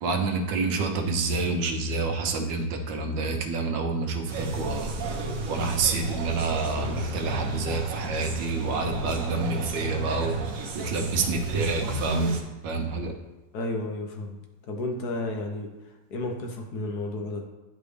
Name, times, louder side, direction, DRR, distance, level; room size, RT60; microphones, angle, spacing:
voice 1, 0.0-4.9 5.5-10.4 10.7-12.3 12.6-13.1, right 3 dB, 85° right, 3 dB, 1.5 m, -28 dB
sound 1, 4.3-12.4, right 3 dB, 60° right, 1.1 m, -33 dB
voice 2, 13.5-14.4 14.7-15.7 16.1-17.4, left 2 dB, 65° left, 2 dB, 1.3 m, -32 dB
10.5 x 4.0 x 3.3 m, 1.1 s
omnidirectional pair, 1.9 m